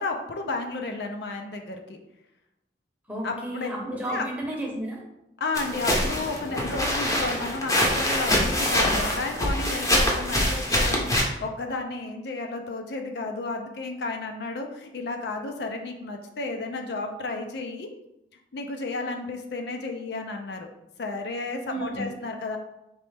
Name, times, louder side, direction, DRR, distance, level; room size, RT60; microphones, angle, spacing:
voice 1, 0.0-2.0 3.2-3.7 4.1-4.3 5.4-17.9 18.5-20.7 21.0-22.6, left 3 dB, 65° left, 4 dB, 0.5 m, -32 dB
voice 2, 3.1-5.0 21.7-22.0, right 1 dB, 10° right, -2 dB, 0.8 m, -32 dB
sound 1, 5.5-11.2, equal, 20° left, 0.7 m, -24 dB
4.4 x 3.1 x 3.3 m, 0.86 s
head